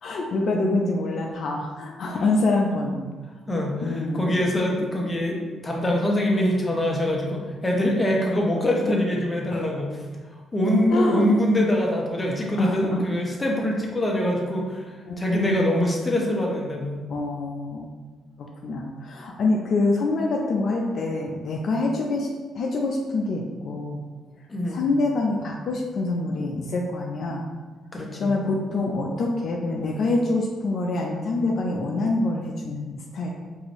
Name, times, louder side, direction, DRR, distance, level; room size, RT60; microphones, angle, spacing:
voice 1, 0.0-3.1 3.8-4.4 9.5-9.7 10.9-11.3 12.6-13.0 15.1-15.9 17.1-17.9 18.4-22.3 22.5-24.0 24.7-27.4 28.2-33.3, left 2 dB, 60° left, 0 dB, 0.5 m, -26 dB
voice 2, 3.5-10.0 10.5-17.0 24.5-24.9 27.9-28.3, left 1 dB, 20° left, -1 dB, 0.8 m, -24 dB
4.8 x 2.6 x 3.0 m, 1.3 s
cardioid pair, 90°, 0 cm